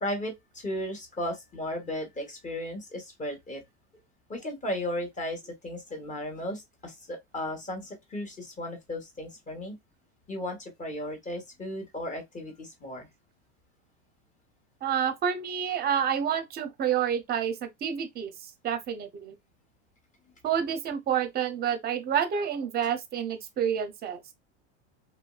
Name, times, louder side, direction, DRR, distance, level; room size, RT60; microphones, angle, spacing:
voice 1, 0.0-3.6 4.3-9.8 10.3-13.1, left 1 dB, 20° left, 1.2 m, -35 dB
voice 2, 14.8-18.3 18.6-19.3 20.4-24.2, right 8 dB, 25° right, 0.6 m, -28 dB
3.1 x 2.6 x 2.3 m
supercardioid pair, 125°, 35 cm